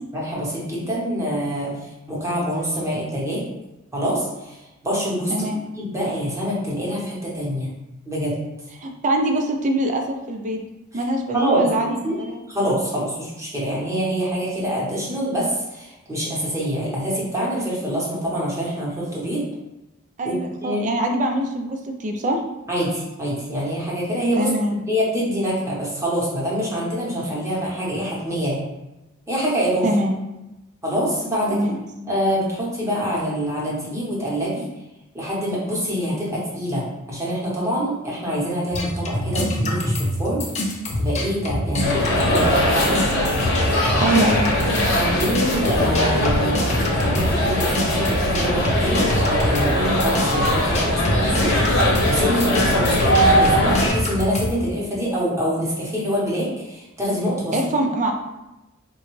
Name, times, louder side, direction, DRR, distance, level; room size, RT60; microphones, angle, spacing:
voice 1, 0.1-1.7 2.1-3.4 3.9-4.6 4.8-5.5 5.7-7.7 8.0-8.4 10.9-11.0 11.3-12.2 12.5-19.4 20.2-21.0 22.7-24.5 24.9-28.6 29.3-29.9 30.8-31.6 32.1-34.7 35.1-40.4 41.0-43.0 44.9-57.5, equal, 15° right, -6 dB, 0.9 m, -25 dB
voice 2, 5.3-5.6 8.8-10.6 10.9-12.4 20.2-22.4 24.3-24.8 29.8-30.2 31.5-31.8 44.0-44.9 57.5-58.1, right 1 dB, 35° right, 3 dB, 0.4 m, -23 dB
sound 1, 38.7-42.5 42.8-54.5, left 1 dB, 30° left, 0.5 m, -25 dB
sound 2, 41.8-53.9, equal, 60° left, 0.9 m, -20 dB
3.8 x 2.3 x 3.1 m, 0.97 s
head